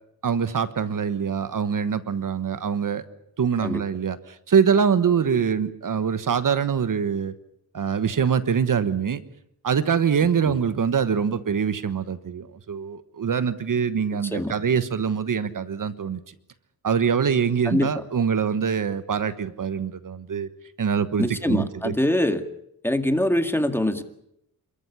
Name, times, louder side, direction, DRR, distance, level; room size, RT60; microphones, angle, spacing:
voice 1, 0.2-3.0 3.4-7.3 7.7-9.2 9.6-16.3 16.8-20.5 20.8-21.9, right 7 dB, 60° right, 13 dB, 1.2 m, -24 dB
voice 2, 17.7-18.0 21.2-22.4 22.8-24.0, left 1 dB, 5° left, 8 dB, 2.1 m, -23 dB
28.0 x 14.0 x 10.0 m, 0.78 s
cardioid pair, 90°, 37 cm